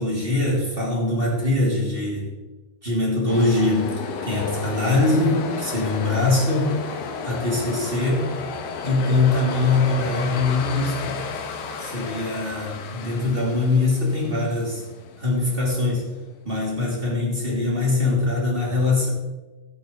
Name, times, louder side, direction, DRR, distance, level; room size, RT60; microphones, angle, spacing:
voice 1, 0.0-2.3 2.8-6.7 7.2-8.3 8.8-11.2 11.7-14.8 15.2-16.1 16.4-19.1, left 2 dB, 15° right, -5 dB, 2.6 m, -22 dB
sound 1, 3.3-16.2, left 5 dB, 80° left, 2.8 m, -33 dB
13.0 x 9.3 x 3.9 m, 1.2 s
omnidirectional pair, 4.0 m